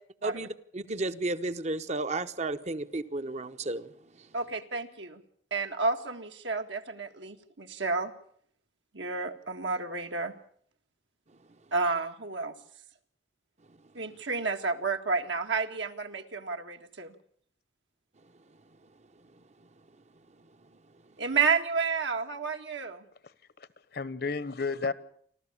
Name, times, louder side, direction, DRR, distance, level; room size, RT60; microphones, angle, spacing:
voice 1, 0.7-3.9, right 2 dB, 35° right, 0.9 m, -32 dB
voice 2, 4.3-5.2 5.5-8.1 8.9-10.3 11.7-12.5 14.0-17.1 21.2-23.0, right 4 dB, 75° right, 1.8 m, -31 dB
voice 3, 23.2-24.9, left 4 dB, 55° left, 1.1 m, -33 dB
28.0 x 13.0 x 8.5 m
head